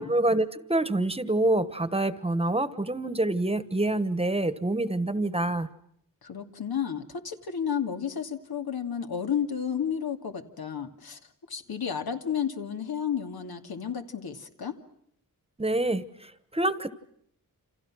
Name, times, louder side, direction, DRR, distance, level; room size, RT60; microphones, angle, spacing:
voice 1, 0.0-5.7 15.6-16.9, right 2 dB, 15° right, 14 dB, 1.2 m, -26 dB
voice 2, 6.2-11.2 11.5-14.8, left 8 dB, 90° left, 6 dB, 2.6 m, -32 dB
29.5 x 28.0 x 6.2 m, 0.70 s
wide cardioid pair, 165°, 36 cm